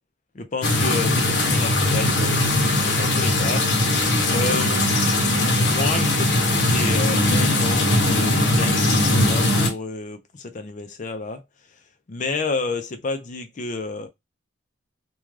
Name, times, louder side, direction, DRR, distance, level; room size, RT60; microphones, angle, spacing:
voice 1, 0.3-3.7 4.3-11.4 12.1-14.1, left 3 dB, 40° left, 0.5 m, -30 dB
sound 1, 0.6-9.7, left 1 dB, 80° left, 0.8 m, -20 dB
2.4 x 2.3 x 3.1 m
head